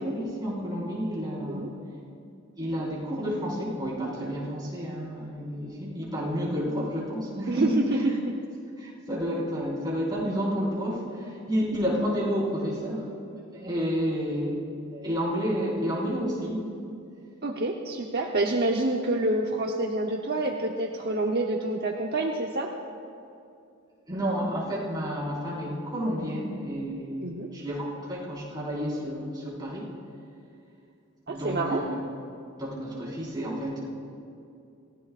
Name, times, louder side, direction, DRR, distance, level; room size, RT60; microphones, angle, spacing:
voice 1, 0.0-1.7 2.6-8.0 8.8-13.1 13.5-14.6 14.9-16.7 24.1-29.9 31.3-32.0 32.6-33.8, equal, 20° right, -7 dB, 4.7 m, -30 dB
voice 2, 17.4-22.7 27.2-27.5 31.3-31.8, right 2 dB, 50° right, 0 dB, 0.9 m, -27 dB
28.5 x 16.0 x 2.5 m, 2.5 s
head